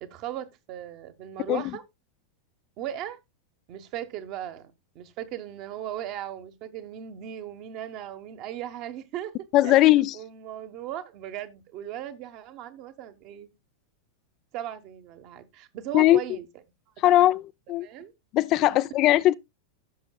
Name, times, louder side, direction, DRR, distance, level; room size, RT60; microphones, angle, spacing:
voice 1, 0.0-1.8 2.8-3.2 3.7-13.5 14.5-16.5 17.0-17.3 17.7-18.1 18.6-18.7, right 11 dB, 40° right, 1.2 m, -38 dB
voice 2, 9.5-10.1 15.9-16.2 17.0-17.9 18.3-19.3, left 15 dB, 35° left, 0.4 m, -19 dB
16.5 x 6.3 x 2.3 m
figure-of-eight pair, 90°, 0 cm